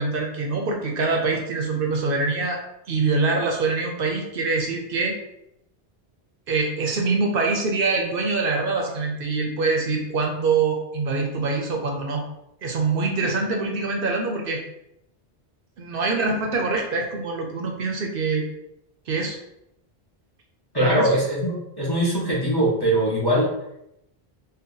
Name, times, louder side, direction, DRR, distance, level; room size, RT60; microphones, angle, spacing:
voice 1, 0.0-2.6 2.9-5.2 6.5-12.2 12.6-14.6 15.8-18.4 19.1-19.4 20.8-21.1, right 3 dB, 65° right, 1 dB, 0.7 m, -24 dB
voice 2, 20.7-23.5, right 1 dB, 25° left, -5 dB, 0.6 m, -22 dB
2.7 x 2.2 x 3.7 m, 0.83 s
omnidirectional pair, 1.1 m